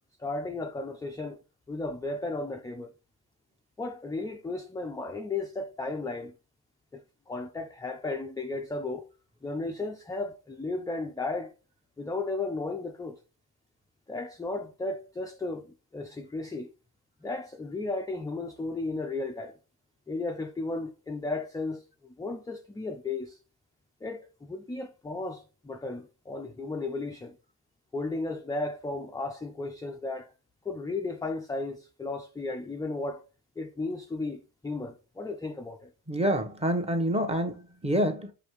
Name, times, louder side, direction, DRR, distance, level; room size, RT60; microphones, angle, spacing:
voice 1, 0.2-1.4 1.7-2.9 3.8-6.3 6.9-9.1 9.4-11.5 12.0-13.2 14.1-16.7 17.2-19.6 20.1-21.8 22.2-23.4 24.0-27.4 27.9-30.3 30.6-33.2 33.6-35.9, left 3 dB, 10° left, 0.4 m, -34 dB
voice 2, 36.1-38.3, equal, 15° right, 0.9 m, -27 dB
5.2 x 2.8 x 3.0 m
supercardioid pair, 70°, 48 cm